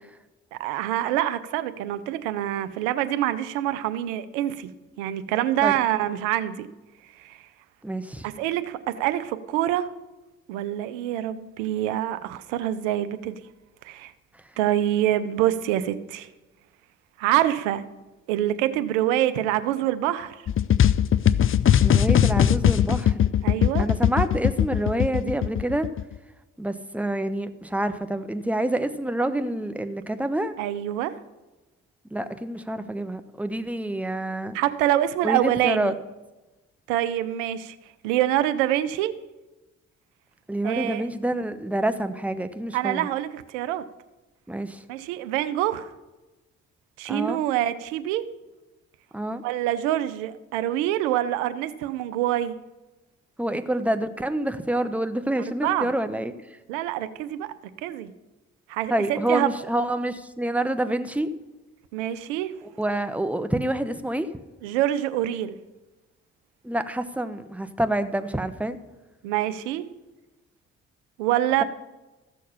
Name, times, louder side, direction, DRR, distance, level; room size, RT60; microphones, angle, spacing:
voice 1, 0.5-4.7 5.0-6.7 7.2-7.4 8.2-9.9 10.5-13.4 13.8-14.1 14.6-16.3 17.2-17.8 18.3-20.4 23.4-23.9 30.6-31.1 34.5-35.9 36.9-37.8 38.0-39.1 40.6-41.1 42.7-43.8 44.9-45.9 47.0-48.2 49.4-52.6 55.6-55.9 56.7-57.5 57.8-58.1 58.7-59.5 61.9-62.5 64.6-65.6 69.2-69.9 71.2-71.6, right 13 dB, 85° right, 13 dB, 0.6 m, -25 dB
voice 2, 7.8-8.2 21.8-23.3 23.8-25.9 26.6-30.5 32.1-34.6 35.2-35.9 40.5-43.1 44.5-44.8 47.1-47.4 49.1-49.4 53.4-56.3 58.9-61.3 62.8-64.3 66.6-68.8, right 1 dB, 5° right, 10 dB, 0.9 m, -27 dB
sound 1, 20.5-26.1, left 10 dB, 35° left, 0.5 m, -20 dB
14.5 x 6.4 x 5.6 m, 1.1 s
hypercardioid pair, 40°, 36 cm